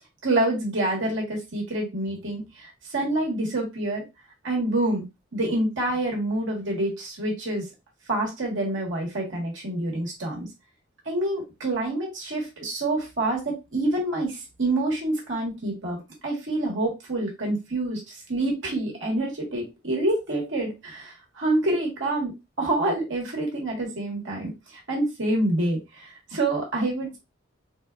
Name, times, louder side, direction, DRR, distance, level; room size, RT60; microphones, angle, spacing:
voice 1, 0.2-4.0 4.4-5.0 5.3-7.6 8.1-10.5 11.0-16.0 16.2-22.3 22.6-24.5 24.9-27.2, right 1 dB, 65° right, -2 dB, 1.3 m, -27 dB
3.8 x 2.4 x 2.3 m, 0.24 s
head